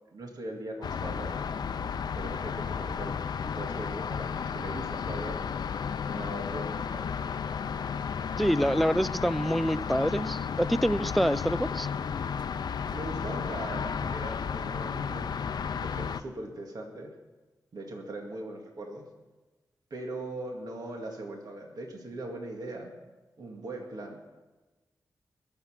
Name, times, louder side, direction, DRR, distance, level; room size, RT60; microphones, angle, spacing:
voice 1, 0.1-1.4 2.1-3.2 3.4-5.4 6.0-7.0 12.9-15.4 15.7-17.1 17.7-19.1 19.9-22.9 23.4-24.2, right 2 dB, 65° right, 1 dB, 2.1 m, -40 dB
sound 1, 0.8-16.2, left 6 dB, 75° left, 0.6 m, -33 dB
voice 2, 8.4-11.9, equal, ahead, 18 dB, 0.4 m, -26 dB
21.5 x 7.3 x 5.8 m, 1.2 s
cardioid pair, 70°, 7 cm